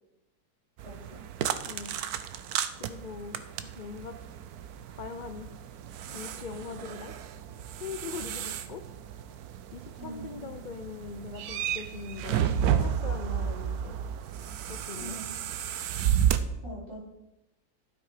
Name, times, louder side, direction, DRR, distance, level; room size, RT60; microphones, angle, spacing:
voice 1, 0.8-1.2 10.0-10.5 14.9-15.3 16.6-17.0, right 1 dB, 40° right, -6 dB, 4.7 m, -43 dB
sound 1, 0.8-16.4, right 9 dB, 80° right, 1.2 m, -32 dB
voice 2, 1.6-2.0 2.8-4.2 4.9-5.5 6.1-7.1 7.7-8.8 9.7-14.0 14.7-15.2, left 5 dB, 60° left, 8 dB, 0.5 m, -41 dB
12.5 x 7.4 x 4.9 m, 0.93 s
omnidirectional pair, 1.6 m